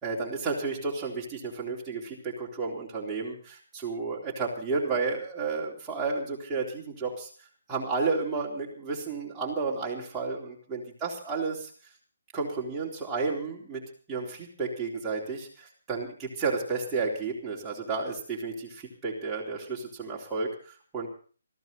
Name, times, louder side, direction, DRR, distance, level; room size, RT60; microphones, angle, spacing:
voice 1, 0.0-7.3 7.7-11.7 12.3-21.1, right 4 dB, 5° right, -4 dB, 3.8 m, -32 dB
20.5 x 15.5 x 4.1 m, 0.41 s
hypercardioid pair, 175°, 0 cm